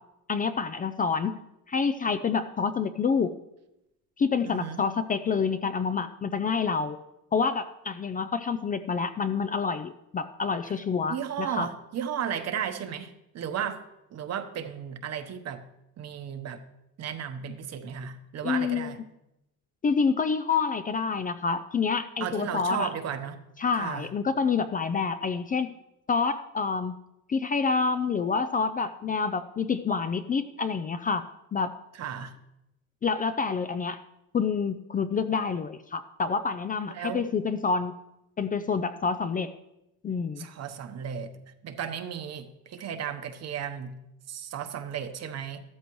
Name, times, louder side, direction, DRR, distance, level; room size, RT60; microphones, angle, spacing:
voice 1, 0.3-1.4 1.7-3.4 4.2-7.0 7.3-11.7 18.4-19.0 19.8-22.9 23.6-25.7 26.1-27.0 27.3-31.2 31.5-31.7 33.0-34.0 34.3-37.9 38.4-39.5 40.0-40.5, left 5 dB, 25° left, 11 dB, 0.4 m, -27 dB
voice 2, 4.4-4.8 11.1-13.8 14.1-15.6 16.0-16.6 17.0-19.0 22.2-23.4 23.7-24.1 32.0-32.3 36.9-37.2 40.4-41.3 41.6-44.0 44.3-45.6, right 8 dB, 50° right, 8 dB, 1.0 m, -34 dB
13.5 x 13.5 x 3.1 m, 0.88 s
cardioid pair, 130°, 34 cm